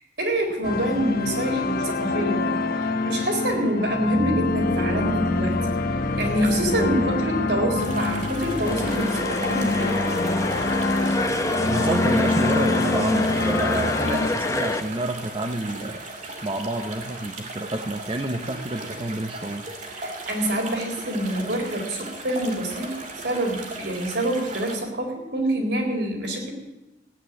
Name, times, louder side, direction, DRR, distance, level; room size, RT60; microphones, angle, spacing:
voice 1, 0.0-5.6 5.9-10.1 19.9-26.5, right 1 dB, 70° right, 1 dB, 4.1 m, -26 dB
sound 1, 0.6-14.3, left 2 dB, 55° left, 1.1 m, -25 dB
sound 2, 7.8-24.8, right 2 dB, 45° right, 2.6 m, -37 dB
sound 3, 8.7-14.8, left 2 dB, 20° left, 0.9 m, -27 dB
voice 2, 11.6-16.0 16.4-19.7, right 2 dB, 30° right, 6 dB, 0.8 m, -29 dB
15.5 x 8.5 x 9.8 m, 1.0 s
head